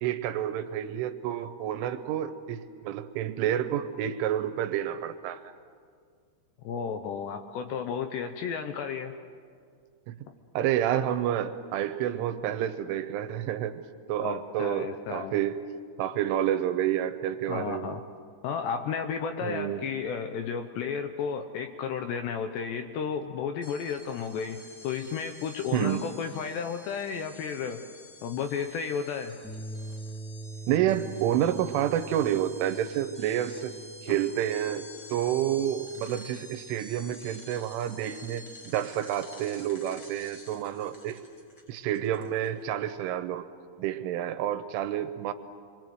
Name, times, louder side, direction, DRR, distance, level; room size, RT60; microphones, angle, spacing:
voice 1, 0.0-5.4 10.1-10.2 10.5-13.8 14.1-15.6 16.0-18.0 19.4-19.8 25.7-26.1 30.7-33.7 34.0-41.2 41.7-43.5 43.8-45.3, right 11 dB, 80° right, 10 dB, 3.3 m, -29 dB
voice 2, 6.6-9.1 14.2-15.4 17.5-18.0 18.4-27.8 28.2-29.3 34.1-34.2, left 6 dB, 75° left, 6 dB, 2.7 m, -33 dB
sound 1, 23.6-42.7, left 1 dB, 40° left, 1.6 m, -49 dB
sound 2, 29.4-37.9, right 2 dB, 5° right, 0.4 m, -45 dB
27.5 x 22.0 x 7.8 m, 2.1 s
omnidirectional pair, 5.8 m